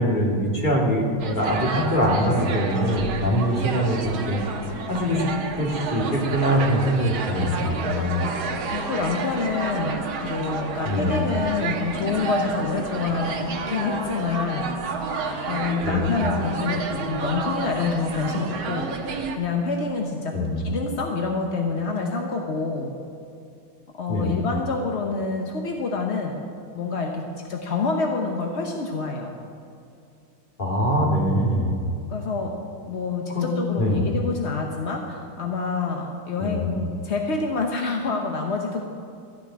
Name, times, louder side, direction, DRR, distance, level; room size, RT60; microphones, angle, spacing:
voice 1, 0.0-4.4 4.9-5.3 5.6-8.1 10.8-11.2 15.8-16.1 20.3-20.6 24.1-24.3 30.6-31.7 33.3-33.5 33.8-34.0 36.4-36.6, equal, 25° left, -2 dB, 2.2 m, -23 dB
sound 1, 1.2-19.4, right 4 dB, 75° right, 1.9 m, -30 dB
voice 2, 8.0-14.7 15.5-18.9 19.3-20.4 20.6-22.9 23.9-26.4 26.7-29.3 32.1-32.5 32.9-38.8, left 4 dB, 50° left, 2 dB, 0.8 m, -27 dB
14.0 x 6.6 x 9.6 m, 2.4 s
omnidirectional pair, 2.3 m